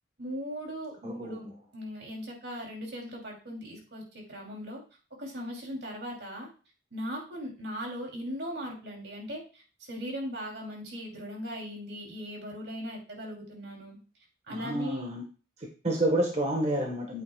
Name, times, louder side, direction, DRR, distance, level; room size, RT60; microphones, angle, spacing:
voice 1, 0.2-1.5 1.7-4.8 5.2-6.5 6.9-9.6 9.9-14.0 14.5-15.1, equal, 75° right, 0 dB, 2.9 m, -38 dB
voice 2, 1.0-1.5 14.5-15.2 15.6-17.2, right 1 dB, 40° right, 1 dB, 1.3 m, -30 dB
8.7 x 8.4 x 2.3 m, 0.36 s
head